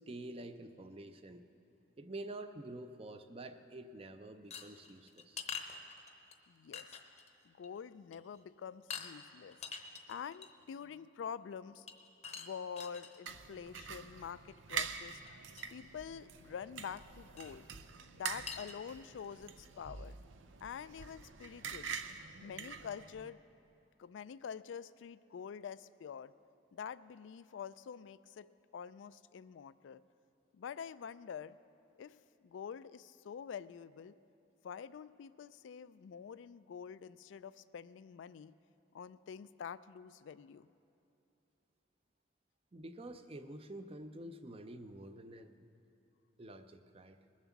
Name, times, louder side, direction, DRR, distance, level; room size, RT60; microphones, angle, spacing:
voice 1, 0.1-1.5 2.0-5.5 42.7-45.7 46.4-47.2, right 1 dB, 30° right, 10 dB, 0.5 m, -48 dB
sound 1, 4.5-6.3 6.7-7.3 7.6-7.8 8.1-8.4 8.9-9.1 9.5-10.6 11.9-13.2 14.8-14.9 15.3-15.4 15.6-15.7 17.4-17.5 18.0-18.1 18.5-18.8, left 6 dB, 35° left, 0.8 m, -45 dB
voice 2, 6.5-6.9 7.5-9.6 10.1-11.9 12.4-15.2 15.7-17.7 18.1-20.2 20.6-22.0 22.4-23.4 24.0-26.3 26.7-30.0 30.5-31.6 32.0-32.2 32.4-34.1 34.6-38.5 38.9-40.7, left 7 dB, 80° left, 16 dB, 0.3 m, -46 dB
sound 2, 13.3-23.3, right 6 dB, 90° right, 0.6 m, -45 dB
20.5 x 7.4 x 7.1 m, 2.8 s
head